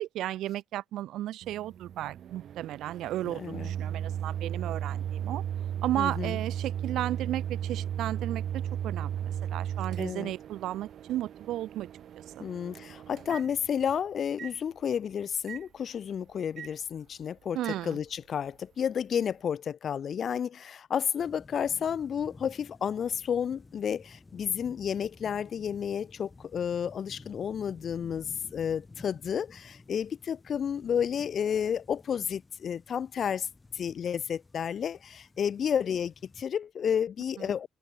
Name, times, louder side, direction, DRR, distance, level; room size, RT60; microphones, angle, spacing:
voice 1, 0.0-5.4 5.8-11.9 12.3-12.4 17.5-18.0, right 13 dB, 85° right, 1.1 m, -34 dB
Microwave oven, 1.4-14.0 14.4-14.5 15.5-15.6 16.6-16.7 17.6-17.8, right 10 dB, 65° right, 0.7 m, -36 dB
voice 2, 3.2-3.7 6.0-6.4 10.0-10.3 12.4-33.5 33.7-37.7, left 8 dB, 55° left, 0.5 m, -31 dB
sound 1, 21.2-36.4, left 3 dB, 25° left, 2.6 m, -54 dB
open air
cardioid pair, 90°, 0 cm